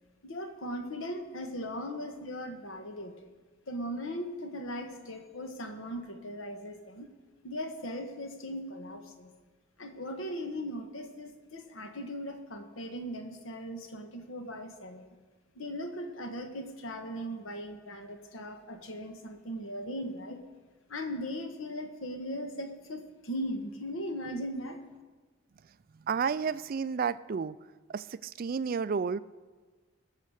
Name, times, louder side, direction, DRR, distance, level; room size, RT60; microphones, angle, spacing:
voice 1, 0.2-3.3 3.7-7.1 7.4-9.3 9.8-15.1 15.5-20.4 20.9-24.8, equal, 75° left, 6 dB, 1.4 m, -38 dB
voice 2, 26.1-27.6 27.9-29.2, right 6 dB, 45° right, 16 dB, 0.3 m, -31 dB
19.5 x 6.7 x 6.5 m, 1.3 s
head